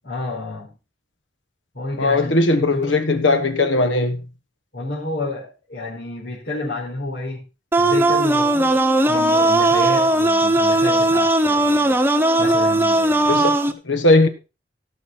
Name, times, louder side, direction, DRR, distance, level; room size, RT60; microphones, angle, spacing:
voice 1, 0.1-0.8 1.7-2.9 4.7-7.4 7.8-8.8 9.1-12.0 12.4-13.5, left 2 dB, 60° left, 5.0 m, -30 dB
voice 2, 2.0-4.2 13.3-14.3, left 2 dB, 75° left, 1.3 m, -18 dB
sound 1, 7.7-13.7, right 2 dB, 10° right, 1.0 m, -17 dB
16.5 x 7.2 x 4.3 m
head